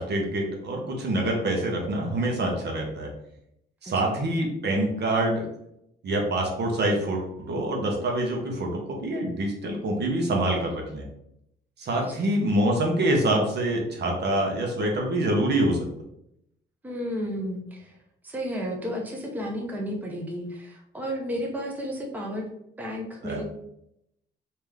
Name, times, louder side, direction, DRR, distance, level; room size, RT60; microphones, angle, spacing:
voice 1, 0.0-3.1 3.8-5.5 6.0-11.1 11.8-15.9 23.2-23.4, right 1 dB, 60° right, 0 dB, 1.1 m, -26 dB
voice 2, 3.8-4.1 11.9-12.3 16.8-18.0 18.2-22.5 22.8-23.4, equal, 10° right, 0 dB, 0.7 m, -33 dB
3.5 x 2.9 x 3.3 m, 0.78 s
cardioid pair, 90°, 20 cm